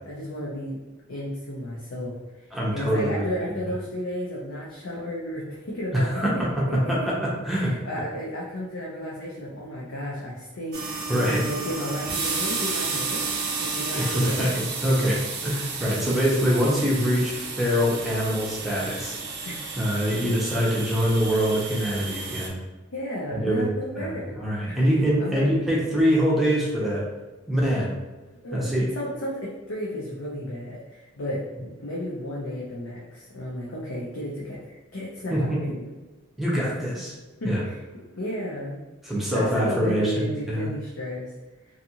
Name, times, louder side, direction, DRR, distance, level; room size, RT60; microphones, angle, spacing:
voice 1, 0.1-0.8 1.1-7.1 7.5-13.2 13.6-14.5 15.0-15.1 15.5-15.6 16.1-16.2 19.4-20.0 22.9-24.4 24.7-24.9 25.2-25.6 28.4-35.7 36.6-36.7 37.4-37.8 38.1-38.8 39.3-41.3, equal, 70° left, -5 dB, 0.6 m, -33 dB
voice 2, 2.5-3.3 5.9-7.8 11.1-11.4 13.9-15.2 15.4-19.2 19.8-22.6 23.4-27.1 27.5-27.9 28.5-28.9 35.3-35.8 36.4-37.1 37.4-37.6 39.0-40.7, equal, ahead, -6 dB, 0.6 m, -24 dB
sound 1, 10.7-22.5, right 4 dB, 55° right, 0.5 m, -32 dB
2.6 x 2.4 x 2.8 m, 1.2 s
head